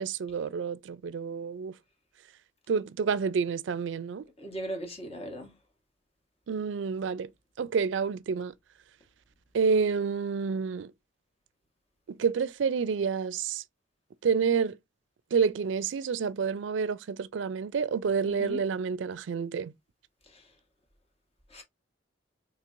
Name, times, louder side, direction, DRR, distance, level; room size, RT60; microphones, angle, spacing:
voice 1, 0.0-1.8 2.7-4.2 6.5-7.3 7.6-8.5 9.5-10.9 12.1-13.6 14.2-14.8 15.3-19.7, right 5 dB, 80° right, 0.4 m, -29 dB
voice 2, 4.4-5.5 18.2-18.6 21.5-21.6, equal, 35° left, 1.3 m, -38 dB
4.4 x 3.2 x 2.5 m
head